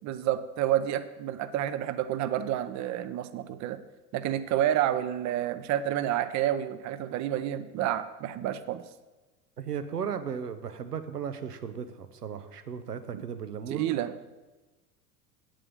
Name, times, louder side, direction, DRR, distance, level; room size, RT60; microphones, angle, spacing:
voice 1, 0.0-3.8 4.1-8.8 13.7-14.1, right 12 dB, 40° right, 12 dB, 0.8 m, -29 dB
voice 2, 9.6-13.9, right 7 dB, 85° right, 10 dB, 0.9 m, -36 dB
9.0 x 7.6 x 6.6 m, 1.2 s
figure-of-eight pair, 80°, 46 cm